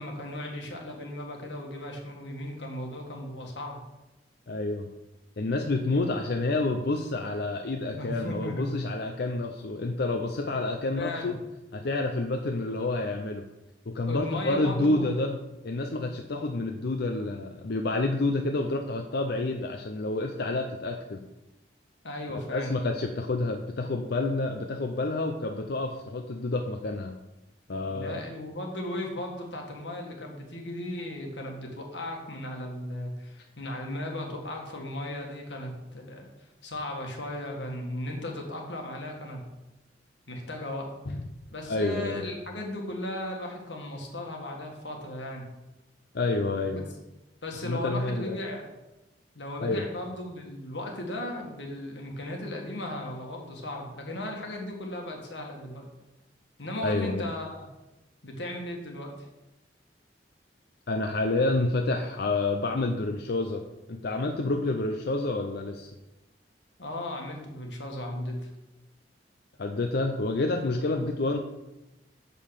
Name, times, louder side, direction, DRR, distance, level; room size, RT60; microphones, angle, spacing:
voice 1, 0.0-3.8 7.9-8.7 11.0-11.3 14.0-15.1 22.0-22.7 27.9-39.4 40.3-40.9 41.5-45.5 46.7-46.8 47.4-48.6 49.3-55.9 56.6-57.7 58.2-59.1 66.8-68.5, left 1 dB, 90° left, 1 dB, 1.8 m, -36 dB
voice 2, 4.5-4.9 5.4-11.4 11.7-13.4 13.9-15.4 15.6-21.2 22.3-27.1 27.7-28.2 41.1-41.2 41.7-42.2 46.1-46.8 47.6-48.4 49.6-49.8 56.8-57.3 60.9-63.6 63.9-65.9 69.6-71.4, left 2 dB, 65° left, 4 dB, 0.6 m, -29 dB
6.9 x 5.6 x 6.5 m, 0.99 s
head